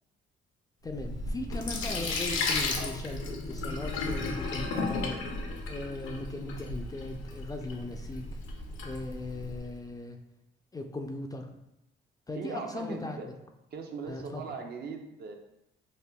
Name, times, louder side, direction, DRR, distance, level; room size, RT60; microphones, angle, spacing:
Sink (filling or washing), 0.8-9.6, left 3 dB, 80° left, 0.6 m, -34 dB
voice 1, 0.8-5.2 5.7-8.4 8.8-10.2 10.7-11.5 12.3-13.2 14.1-14.4, left 2 dB, 20° left, 4 dB, 0.3 m, -38 dB
voice 2, 12.3-13.4 13.7-15.3, right 5 dB, 55° right, 3 dB, 0.5 m, -39 dB
5.1 x 2.2 x 2.2 m, 0.85 s
cardioid pair, 90°, 20 cm